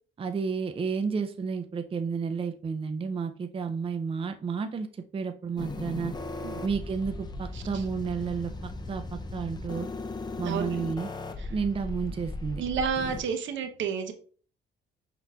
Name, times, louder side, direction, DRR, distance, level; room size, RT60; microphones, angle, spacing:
voice 1, 0.2-6.1 6.6-9.9 10.4-11.1 11.5-12.6, right 5 dB, 30° right, 7 dB, 0.5 m, -31 dB
sound 1, 5.6-13.2, left 2 dB, 20° left, 0.5 m, -37 dB
voice 2, 12.6-14.1, right 6 dB, 70° right, 7 dB, 0.8 m, -30 dB
5.5 x 3.7 x 2.3 m, 0.42 s
cardioid pair, 90°, 20 cm